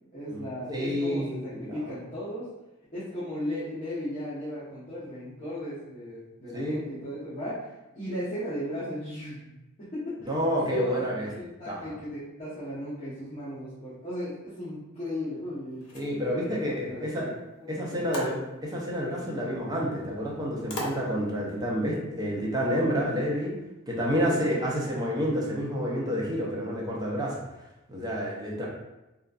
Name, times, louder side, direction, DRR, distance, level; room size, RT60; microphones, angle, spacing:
voice 1, 0.1-2.5 2.9-9.5 9.8-10.3 10.7-15.8 16.5-18.2 24.2-24.4, equal, 30° left, -12 dB, 0.9 m, -36 dB
voice 2, 0.7-1.9 6.5-6.8 10.3-11.3 11.7-11.9 15.9-17.3 17.7-23.5 23.9-27.4 27.9-28.7, equal, 20° right, -4 dB, 0.6 m, -29 dB
sound 1, 15.7-21.6, left 1 dB, 80° left, 0.7 m, -43 dB
3.0 x 2.4 x 2.4 m, 0.99 s
head